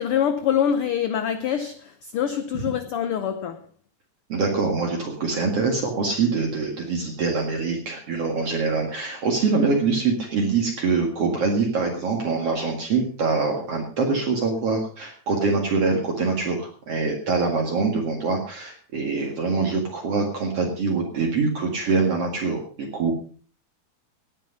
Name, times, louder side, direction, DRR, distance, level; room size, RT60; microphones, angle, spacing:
voice 1, 0.0-3.6, left 9 dB, 80° left, 1.2 m, -25 dB
voice 2, 4.3-23.1, right 4 dB, 50° right, 2.8 m, -24 dB
18.0 x 9.1 x 5.4 m
omnidirectional pair, 3.6 m